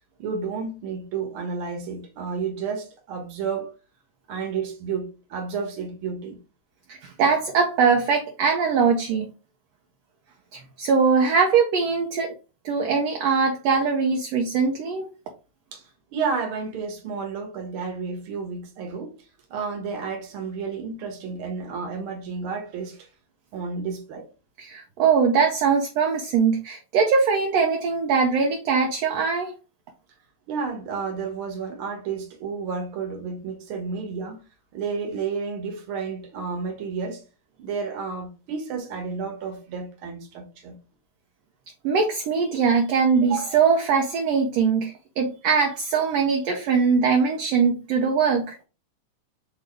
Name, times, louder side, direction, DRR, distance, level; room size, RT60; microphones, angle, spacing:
voice 1, 0.2-3.7 4.3-6.4 15.7-19.1 19.5-23.1 23.5-24.3 30.5-34.4 34.7-37.2 37.6-40.8, right 5 dB, 55° right, 1.7 m, -31 dB
voice 2, 6.9-9.3 10.5-12.3 12.6-15.1 24.6-29.5 41.8-48.6, right 5 dB, 70° right, 1.7 m, -21 dB
6.1 x 2.7 x 3.2 m
omnidirectional pair, 3.5 m